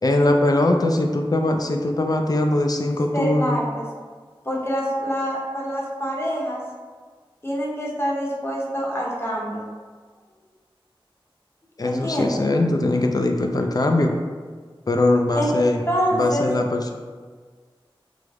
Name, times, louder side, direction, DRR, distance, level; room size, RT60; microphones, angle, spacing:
voice 1, 0.0-3.6 11.8-14.1 14.9-15.8 16.1-16.9, left 2 dB, 45° left, 3 dB, 0.3 m, -21 dB
voice 2, 3.1-3.8 4.4-6.6 7.4-9.7 11.8-12.4 15.4-15.5 15.9-16.4, equal, 25° left, -4 dB, 0.8 m, -25 dB
3.3 x 2.0 x 3.5 m, 1.5 s
wide cardioid pair, 45°, 9 cm